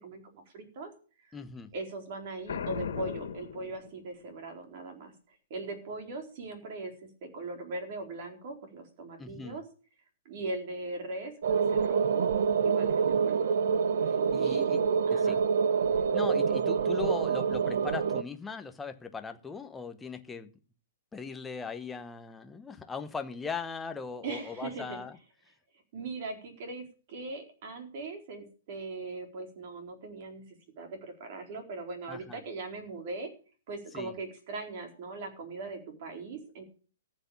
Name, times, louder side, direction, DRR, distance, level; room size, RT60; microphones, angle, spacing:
voice 1, 0.0-0.9 1.3-1.4 1.7-6.9 7.2-9.6 10.2-12.3 12.6-13.4 14.4-14.7 15.1-15.4 24.2-25.0 25.9-33.3 33.7-36.6, right 3 dB, 35° right, 4 dB, 4.2 m, -40 dB
voice 2, 1.3-1.7 9.2-9.6 14.1-14.8 15.1-15.4 16.1-20.5 21.1-25.2 32.1-32.4 33.9-34.1, left 5 dB, 5° left, 7 dB, 0.9 m, -39 dB
Boom, 2.5-4.3, left 7 dB, 75° left, 2.1 m, -37 dB
sound 1, 11.4-18.2, right 6 dB, 60° right, 0.9 m, -26 dB
14.5 x 8.3 x 7.1 m, 0.40 s
hypercardioid pair, 170°, 0 cm